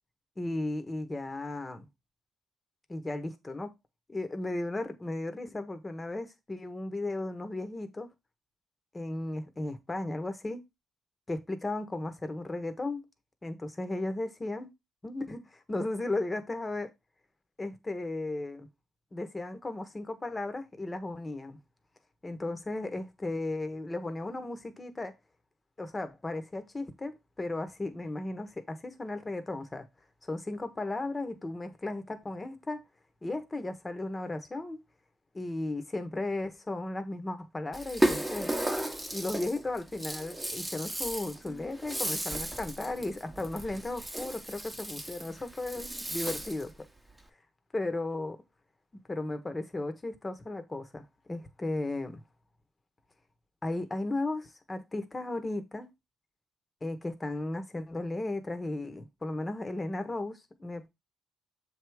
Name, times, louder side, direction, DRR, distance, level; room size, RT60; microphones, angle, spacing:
voice 1, 0.4-1.9 2.9-3.7 4.1-8.1 8.9-10.6 11.3-13.1 13.4-14.7 15.0-16.9 17.6-18.7 19.1-21.6 22.2-25.1 25.8-29.9 30.2-32.8 33.2-34.8 35.3-38.6 39.1-46.7 47.7-48.4 49.1-52.2 53.6-55.9 56.8-60.9, left 2 dB, 20° left, 1.1 m, -35 dB
Rattle (instrument), 37.7-46.7, right 1 dB, 10° right, 1.1 m, -34 dB
7.1 x 3.5 x 4.7 m
cardioid pair, 90°, 0 cm